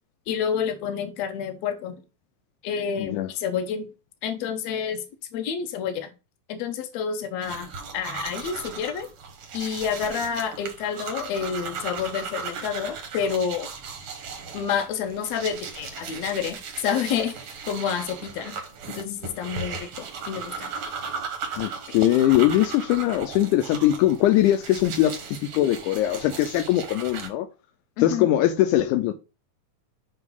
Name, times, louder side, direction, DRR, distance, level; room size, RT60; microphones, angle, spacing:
voice 1, 0.3-2.0 2.6-3.9 4.2-5.0 5.3-6.1 6.5-9.1 9.5-13.7 14.5-18.6 18.9-20.7 28.0-28.3, left 7 dB, 70° left, 1.7 m, -29 dB
voice 2, 3.0-3.3 21.6-27.5 28.0-29.1, left 13 dB, 90° left, 1.8 m, -21 dB
sound 1, 7.4-27.3, right 5 dB, 70° right, 1.3 m, -37 dB
8.0 x 2.8 x 5.3 m
omnidirectional pair, 4.1 m